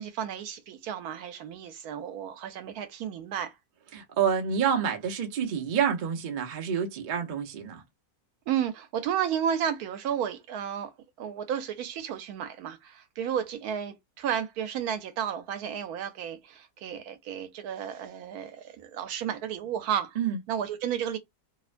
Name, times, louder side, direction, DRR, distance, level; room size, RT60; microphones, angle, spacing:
voice 1, 0.0-3.5 8.5-10.9 11.2-20.2 20.5-21.2, right 9 dB, 80° right, 1.1 m, -32 dB
voice 2, 3.9-7.8 20.2-20.4, right 7 dB, 55° right, 0.5 m, -28 dB
2.9 x 2.1 x 2.4 m
omnidirectional pair, 1.6 m